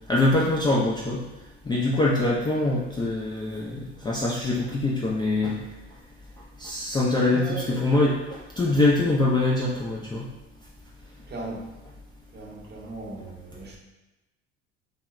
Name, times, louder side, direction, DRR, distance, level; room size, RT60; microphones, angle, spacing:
voice 1, 0.1-1.2 1.7-5.6 6.6-10.3, left 2 dB, 15° left, -5 dB, 0.3 m, -24 dB
voice 2, 7.3-8.0 11.3-11.7 12.3-13.8, right 2 dB, 30° right, -1 dB, 0.7 m, -37 dB
2.1 x 2.0 x 3.5 m, 1.0 s
hypercardioid pair, 65°, 33 cm